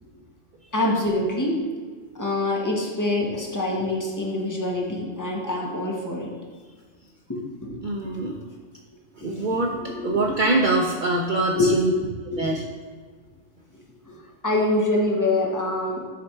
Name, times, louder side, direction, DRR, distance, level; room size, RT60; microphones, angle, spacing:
voice 1, 0.7-1.6 2.2-6.3 7.3-7.8 9.8-10.1 11.5-11.7 12.3-12.6 14.1-16.0, left 2 dB, 15° left, -2 dB, 0.8 m, -25 dB
voice 2, 7.8-8.4 9.2-9.7 10.0-11.9 12.4-12.6, right 2 dB, 65° right, 0 dB, 0.5 m, -23 dB
7.4 x 3.3 x 4.4 m, 1.6 s
omnidirectional pair, 1.4 m